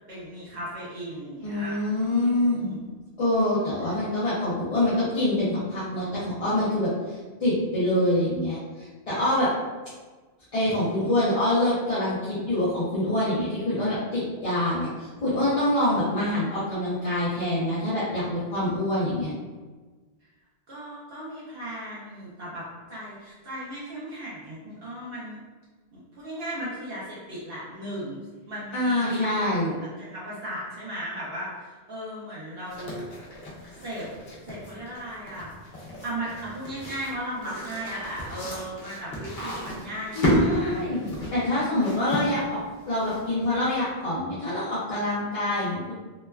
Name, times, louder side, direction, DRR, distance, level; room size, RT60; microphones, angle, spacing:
voice 1, 0.1-1.8 2.0-2.8 20.7-25.4 25.9-28.2 28.5-29.6 30.0-33.1 33.8-34.1 34.4-35.5 36.0-40.7, right 1 dB, 70° right, -8 dB, 0.9 m, -36 dB
voice 2, 1.4-2.8 3.2-9.5 10.5-19.3 28.7-29.7 40.1-42.6 42.9-45.9, left 1 dB, 40° left, -10 dB, 0.6 m, -25 dB
sound 1, 32.7-43.5, equal, 70° left, 1.0 m, -32 dB
3.0 x 2.2 x 2.2 m, 1.3 s
omnidirectional pair, 1.1 m